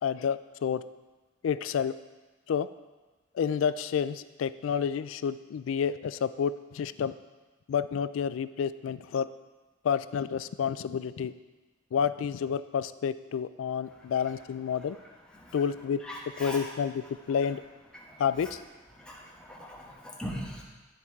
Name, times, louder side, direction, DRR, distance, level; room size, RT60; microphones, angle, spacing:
voice 1, 0.0-0.8 1.4-1.9 2.5-2.7 3.3-7.1 7.7-9.3 9.8-11.3 11.9-15.0 15.5-16.0 16.4-17.6 18.2-18.6, left 7 dB, 85° left, 15 dB, 0.3 m, -29 dB
voice 2, 16.0-16.7 17.9-18.2 19.0-20.6, equal, 5° left, -4 dB, 1.2 m, -40 dB
12.0 x 4.5 x 3.6 m, 1.2 s
head